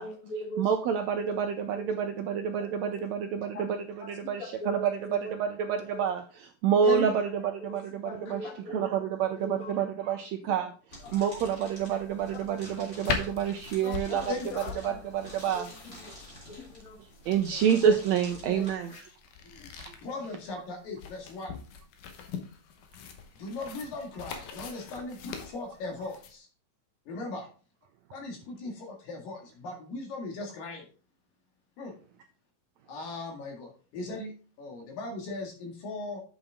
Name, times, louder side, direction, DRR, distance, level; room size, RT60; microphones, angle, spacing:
voice 1, 0.0-0.7 1.2-1.3 1.7-2.0 2.6-2.9 3.5-3.6 4.0-4.1 4.4-5.3 5.7-6.0 7.0-7.1 7.7-8.9 9.4-9.9 10.4-10.5 11.0-11.2 12.8-12.9 13.8-15.0 15.5-16.1 16.8-17.0 18.4-18.7 19.4-19.7, left 1 dB, 50° left, 4 dB, 1.0 m, -40 dB
voice 2, 0.6-8.4 8.7-14.3 14.8-15.7 17.2-19.0 19.8-19.9, right 7 dB, 80° right, 5 dB, 1.6 m, -28 dB
sound 1, 10.9-18.7, left 1 dB, 20° left, 3.5 m, -48 dB
sound 2, 13.0-26.3, left 7 dB, 70° left, 2.5 m, -41 dB
voice 3, 20.0-21.5 23.4-26.5 27.1-27.5 28.1-30.9 31.8-31.9 32.9-34.3 34.6-36.2, left 3 dB, 85° left, 1 dB, 3.8 m, -38 dB
8.2 x 7.2 x 3.6 m, 0.39 s
omnidirectional pair, 3.9 m